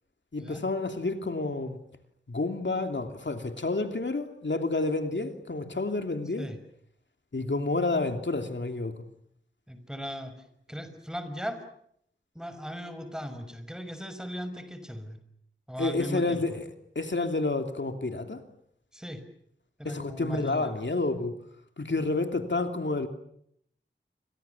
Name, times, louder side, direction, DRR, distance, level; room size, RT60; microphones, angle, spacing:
voice 1, 0.3-1.8 2.3-6.5 7.3-8.9 15.8-18.4 19.8-21.3 21.8-23.1, left 3 dB, 70° left, 6 dB, 2.9 m, -29 dB
voice 2, 9.7-10.3 10.7-11.6 12.3-15.2 15.7-16.4 18.9-19.2 19.8-20.8, equal, 5° right, 9 dB, 6.0 m, -37 dB
29.5 x 25.5 x 7.2 m, 0.71 s
wide cardioid pair, 55°, 20 cm